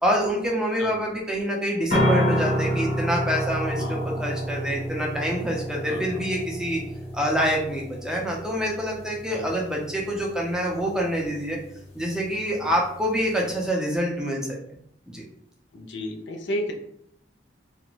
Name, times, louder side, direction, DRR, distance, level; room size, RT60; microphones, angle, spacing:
voice 1, 0.0-6.8 7.1-11.6 11.9-14.6 15.1-15.2, equal, 5° right, -2 dB, 0.5 m, -26 dB
voice 2, 0.8-1.1 3.8-4.2 5.9-6.2 9.3-9.5 12.6-12.7 15.7-16.7, left 1 dB, 90° left, 3 dB, 0.5 m, -33 dB
sound 1, 1.9-13.7, equal, 35° left, 0.8 m, -30 dB
2.4 x 2.1 x 3.0 m, 0.72 s
head